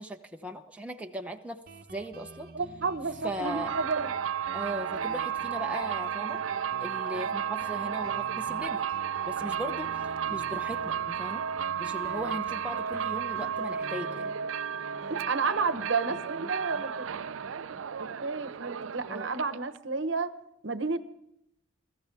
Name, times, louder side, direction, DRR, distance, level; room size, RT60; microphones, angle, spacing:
voice 1, 0.0-1.6 1.9-2.5 3.2-3.8 4.5-6.4 6.8-8.9 9.2-11.4 11.8-14.4 19.1-19.3, right 1 dB, 5° right, 2 dB, 0.8 m, -38 dB
Guitar, 1.7-18.9, right 2 dB, 45° right, 0.9 m, -49 dB
voice 2, 2.5-4.1 15.1-17.2 18.0-20.3 20.6-21.0, right 4 dB, 70° right, 11 dB, 1.0 m, -31 dB
sound 1, 3.3-19.8, right 8 dB, 85° right, 0.5 m, -33 dB
21.5 x 14.5 x 3.5 m, 0.79 s
head